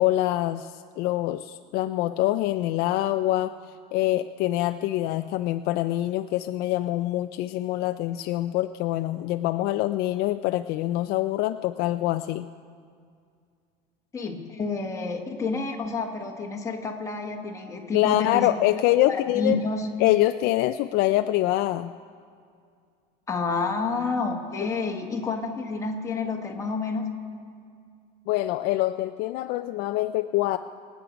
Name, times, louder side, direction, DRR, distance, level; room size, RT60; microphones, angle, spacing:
voice 1, 0.0-3.5 3.9-12.5 17.9-19.6 20.0-21.9 28.3-30.6, left 15 dB, 55° left, 9 dB, 0.4 m, -25 dB
voice 2, 14.1-18.5 19.1-19.9 23.3-27.1, left 4 dB, 15° left, 1 dB, 1.3 m, -29 dB
24.5 x 8.2 x 5.1 m, 2.2 s
cardioid pair, 160°, 19 cm